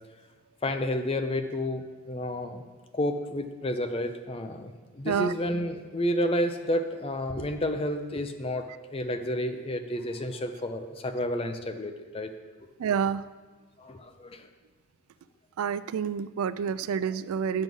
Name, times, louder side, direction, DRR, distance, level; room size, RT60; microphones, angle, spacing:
voice 1, 0.6-2.6 2.9-12.3 13.8-14.5, left 1 dB, 25° left, 7 dB, 0.5 m, -30 dB
voice 2, 12.8-13.2 15.6-17.6, right 7 dB, 85° right, 16 dB, 0.3 m, -28 dB
7.7 x 6.2 x 5.3 m, 1.3 s
head